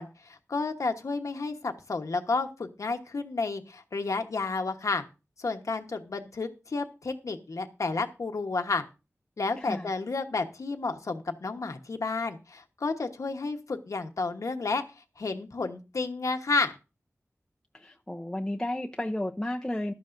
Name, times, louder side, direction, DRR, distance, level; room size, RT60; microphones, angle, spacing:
voice 1, 0.0-5.0 5.4-8.8 9.4-14.8 15.2-16.7, left 3 dB, 90° left, 1.2 m, -31 dB
voice 2, 9.6-9.9 17.7-19.9, left 1 dB, 10° left, 0.7 m, -32 dB
14.5 x 12.0 x 2.6 m
wide cardioid pair, 65°, 5 cm